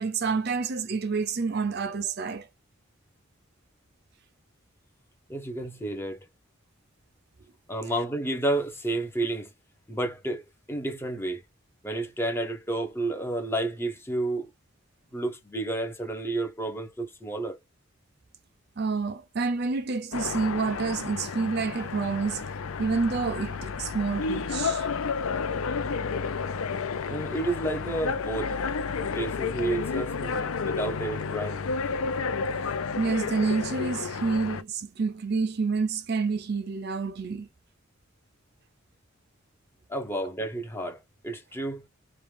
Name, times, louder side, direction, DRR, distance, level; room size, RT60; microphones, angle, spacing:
voice 1, 0.0-2.5 18.8-22.5 22.8-24.9 33.0-37.5, right 4 dB, 50° right, 0.5 m, -28 dB
voice 2, 5.3-6.2 7.7-9.5 9.9-10.4 10.7-11.4 11.8-14.5 15.1-17.6 27.1-28.6 29.1-31.6 39.9-41.9, right 2 dB, 10° left, 0.8 m, -31 dB
sound 1, 20.1-34.6, left 5 dB, 80° left, 0.5 m, -31 dB
5.0 x 2.3 x 3.4 m
head